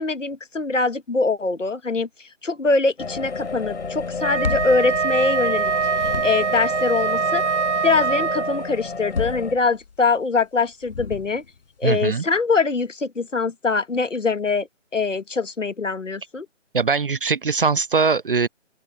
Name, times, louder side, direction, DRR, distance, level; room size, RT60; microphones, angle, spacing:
voice 1, 0.0-2.1 2.4-5.7 6.2-7.4 7.8-11.4 11.8-14.7 14.9-16.5, left 4 dB, 90° left, 1.7 m, -23 dB
sound 1, 3.0-9.6, left 4 dB, 65° left, 4.7 m, -32 dB
sound 2, 4.1-5.6 5.9-6.7 8.8-10.1 10.8-11.6, left 5 dB, 50° left, 5.6 m, -31 dB
Wind instrument woodwind instrument, 4.1-8.8, right 5 dB, 70° right, 1.0 m, -23 dB
voice 2, 11.8-12.2 16.7-18.5, right 5 dB, 45° right, 0.6 m, -21 dB
open air
figure-of-eight pair, 160°, 37 cm